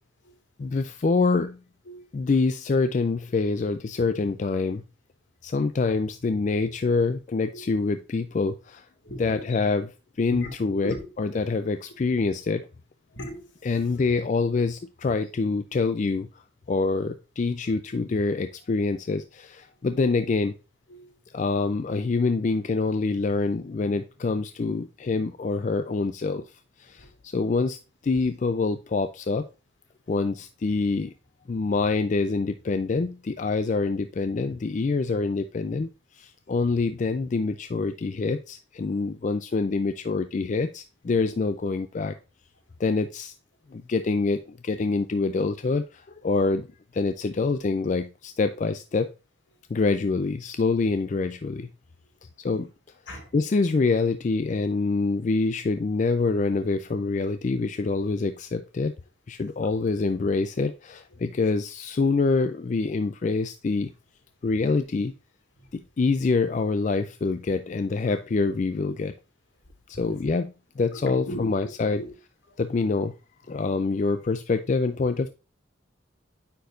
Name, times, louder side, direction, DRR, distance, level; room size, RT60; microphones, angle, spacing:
voice 1, 0.6-1.6 2.1-4.8 5.4-8.9 9.2-9.9 10.2-12.6 13.6-16.3 16.7-20.5 21.3-26.4 26.8-27.8 28.0-29.4 30.1-31.1 31.5-42.1 42.8-43.3 43.7-46.7 46.9-49.1 49.7-51.7 52.4-52.7 53.3-58.9 59.3-63.9 64.4-65.1 65.7-69.1 69.9-70.5 70.8-72.0 72.6-73.1 73.5-75.3, left 3 dB, 40° left, 0.4 m, -26 dB
voice 2, 1.9-2.3 7.5-7.7 9.0-9.6 10.3-10.5 10.8-11.1 11.4-11.5 12.2-12.4 13.1-13.7 17.9-18.0 19.7-19.9 20.9-21.2 26.9-27.2 28.1-28.3 38.9-39.1 46.2-46.4 48.4-48.7 49.5-49.7 52.0-52.2 53.1-53.3 59.6-59.7 61.1-61.3 62.1-62.2 65.6-65.7 67.4-67.5 69.7-70.3 70.9-71.7 72.0-72.1 72.5-72.6 73.5-73.7, equal, 80° left, 2.0 m, -40 dB
9.3 x 4.5 x 2.5 m
head